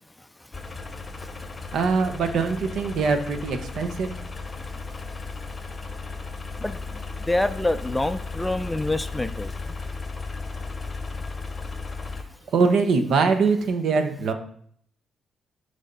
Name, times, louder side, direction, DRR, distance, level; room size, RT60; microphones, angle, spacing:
voice 1, 0.2-0.5 1.2-1.5 4.3-4.4 4.7-4.9 6.6-9.7, left 2 dB, 10° left, 11 dB, 0.4 m, -28 dB
sound 1, 0.5-12.2, left 4 dB, 25° left, 0.8 m, -35 dB
voice 2, 1.7-4.1 12.5-14.3, right 4 dB, 65° right, 7 dB, 0.9 m, -22 dB
6.3 x 3.5 x 5.3 m, 0.62 s
cardioid pair, 90°, 0 cm